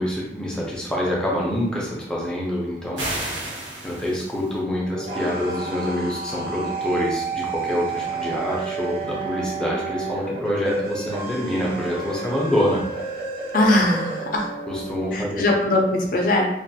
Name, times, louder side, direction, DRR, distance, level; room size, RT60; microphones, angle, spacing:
voice 1, 0.0-3.3 3.8-12.8 14.7-15.4, left 1 dB, 5° left, -5 dB, 0.5 m, -26 dB
sound 1, 3.0-4.6, right 1 dB, 85° right, 1.0 m, -31 dB
sound 2, 4.7-15.1, right 4 dB, 50° right, 0.7 m, -31 dB
voice 2, 13.5-14.5 15.1-16.4, left 1 dB, 50° left, 1 dB, 0.5 m, -20 dB
2.5 x 2.3 x 2.7 m, 0.80 s
head